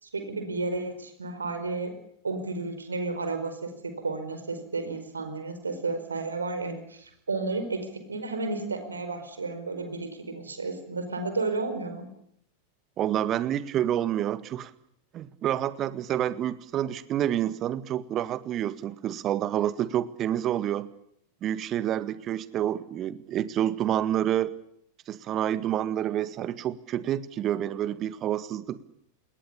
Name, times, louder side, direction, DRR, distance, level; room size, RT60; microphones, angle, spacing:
voice 1, 0.0-1.9 2.2-12.0, right 3 dB, 75° right, 8 dB, 5.0 m, -32 dB
voice 2, 13.0-14.7 15.1-20.9 21.4-24.5 25.1-28.8, right 11 dB, 30° right, 14 dB, 1.7 m, -28 dB
27.0 x 21.5 x 7.0 m, 0.72 s
figure-of-eight pair, 90°, 0 cm